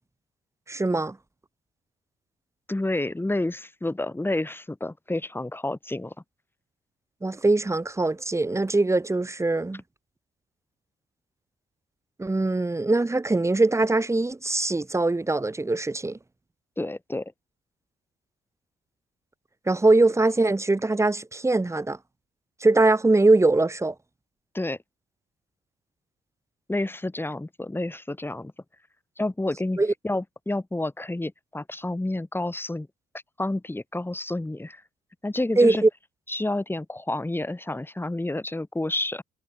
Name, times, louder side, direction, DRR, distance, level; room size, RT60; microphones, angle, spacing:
voice 1, 0.7-1.2 7.2-9.8 12.2-16.2 19.7-22.0 22.6-23.9 29.8-29.9 35.6-35.9, right 2 dB, 15° right, 1.4 m, -22 dB
voice 2, 2.7-6.1 16.8-17.3 24.5-24.8 26.7-28.5 29.2-32.9 33.4-34.8 35.2-35.8 36.3-39.2, left 2 dB, 10° left, 3.6 m, -29 dB
cardioid pair, 90°, 20 cm